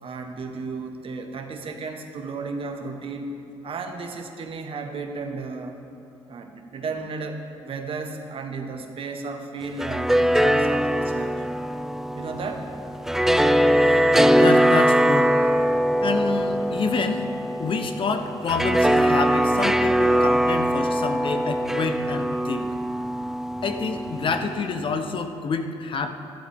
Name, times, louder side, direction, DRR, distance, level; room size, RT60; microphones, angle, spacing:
voice 1, 0.0-3.3 3.6-5.7 6.3-11.5 12.1-12.7, right 4 dB, 55° right, 5 dB, 1.2 m, -34 dB
sound 1, 9.6-24.8, equal, 5° right, 0.4 m, -22 dB
voice 2, 14.4-15.3 16.0-17.3 17.6-22.7 23.6-26.1, left 4 dB, 50° left, 7 dB, 0.9 m, -28 dB
13.5 x 11.5 x 3.6 m, 2.6 s
supercardioid pair, 65°, 11 cm